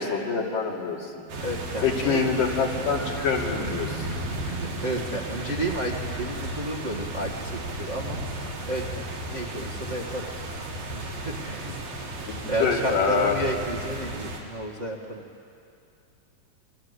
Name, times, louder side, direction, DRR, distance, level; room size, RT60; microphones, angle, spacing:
voice 1, 0.0-1.5 1.8-4.1 12.3-13.4, left 5 dB, 70° left, -1 dB, 4.4 m, -26 dB
sound 1, 1.3-14.4, right 1 dB, 85° right, 4.8 m, -34 dB
voice 2, 1.4-2.2 4.4-8.2 8.6-9.0 9.3-10.3 10.9-11.7 12.5-15.2, right 1 dB, 30° right, -1 dB, 1.3 m, -31 dB
29.5 x 24.0 x 8.2 m, 2.6 s
omnidirectional pair, 4.1 m